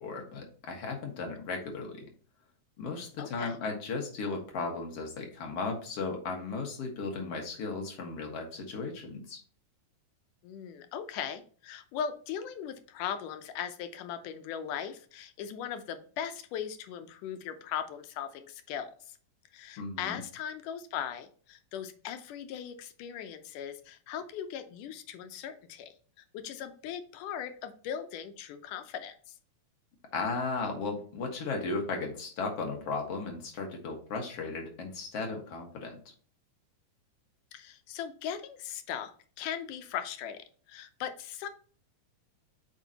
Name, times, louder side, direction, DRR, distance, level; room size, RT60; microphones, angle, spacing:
voice 1, 0.0-2.1 2.8-9.4 19.8-20.2 30.1-36.0, left 3 dB, 55° left, 2 dB, 2.3 m, -35 dB
voice 2, 3.2-3.6 10.4-18.9 19.5-25.9 26.3-29.4 37.5-39.1 39.4-41.5, left 8 dB, 85° left, 8 dB, 2.3 m, -39 dB
8.2 x 5.2 x 2.8 m, 0.43 s
omnidirectional pair, 3.6 m